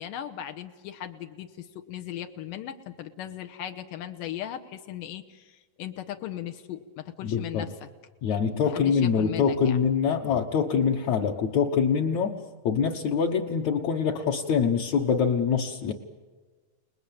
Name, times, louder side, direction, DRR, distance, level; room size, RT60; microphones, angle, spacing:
voice 1, 0.0-7.7 8.7-9.8, left 11 dB, 85° left, 6 dB, 2.6 m, -38 dB
voice 2, 7.2-7.7 8.2-15.9, left 6 dB, 65° left, -1 dB, 2.3 m, -25 dB
29.0 x 20.0 x 8.7 m, 1.4 s
omnidirectional pair, 3.8 m